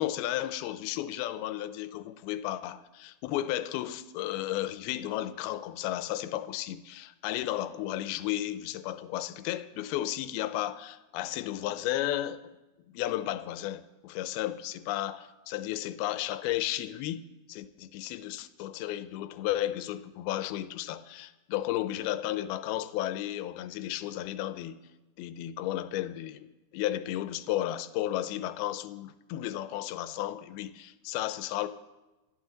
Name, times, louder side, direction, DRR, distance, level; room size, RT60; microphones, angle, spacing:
voice 1, 0.0-12.4 12.9-24.8 25.2-26.5 26.7-31.7, left 13 dB, 90° left, 2.6 m, -33 dB
27.5 x 11.5 x 3.8 m
omnidirectional pair, 4.3 m